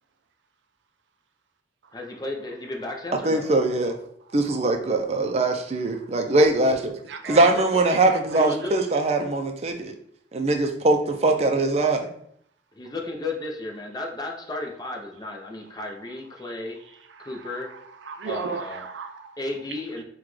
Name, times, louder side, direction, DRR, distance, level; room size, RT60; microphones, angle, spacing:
voice 1, 1.9-3.5 7.2-7.6 8.4-8.8 11.4-11.5 12.7-16.8 17.2-17.7 18.3-18.8 19.4-20.0, left 2 dB, 20° left, 0.6 m, -34 dB
voice 2, 3.2-4.0 4.3-6.9 7.3-9.9 10.3-12.1, right 2 dB, 35° right, 0.5 m, -22 dB
voice 3, 7.1-7.5 7.9-8.9 16.4-16.5 17.1-19.4 20.0-20.1, right 5 dB, 90° right, 0.4 m, -37 dB
5.9 x 2.3 x 3.1 m
head